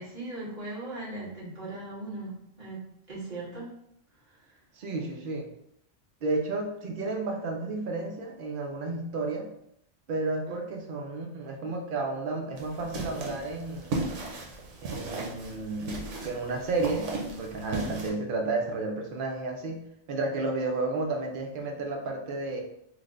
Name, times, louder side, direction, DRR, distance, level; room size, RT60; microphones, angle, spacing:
voice 1, 0.0-3.7 10.5-10.6, right 2 dB, 35° right, -10 dB, 1.5 m, -39 dB
voice 2, 4.7-5.5 6.2-9.5 10.1-13.9 14.8-22.6, right 3 dB, 55° right, 2 dB, 0.7 m, -32 dB
sound 1, 12.6-18.1, right 2 dB, 90° right, 1.0 m, -36 dB
3.2 x 2.1 x 3.7 m, 0.75 s
omnidirectional pair, 1.2 m